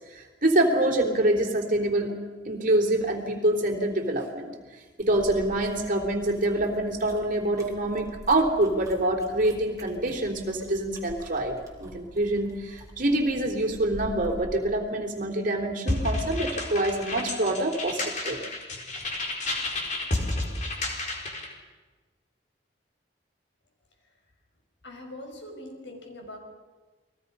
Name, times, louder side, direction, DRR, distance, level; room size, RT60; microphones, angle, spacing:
voice 1, 0.1-2.2 2.5-4.5 5.0-18.0 18.2-18.4, right 1 dB, 50° right, 3 dB, 3.4 m, -26 dB
sound 1, 5.0-14.6, equal, 20° right, 3.6 m, -46 dB
sound 2, 15.9-21.5, left 2 dB, 45° left, 4.1 m, -31 dB
voice 2, 24.8-26.4, left 1 dB, 85° left, 2 dB, 5.7 m, -42 dB
29.0 x 21.0 x 5.5 m, 1.3 s
head